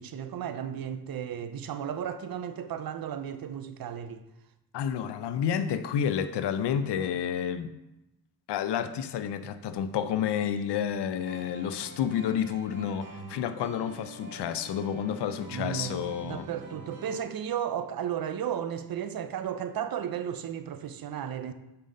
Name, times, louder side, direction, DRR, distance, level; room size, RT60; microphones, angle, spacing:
voice 1, 0.0-4.2 15.5-21.5, right 9 dB, 55° right, 0.7 m, -34 dB
voice 2, 4.7-7.7 8.5-16.5, left 8 dB, 75° left, 0.6 m, -30 dB
sound 1, 11.2-17.2, right 1 dB, 30° right, 1.8 m, -45 dB
6.8 x 5.6 x 3.8 m
cardioid pair, 80°, 41 cm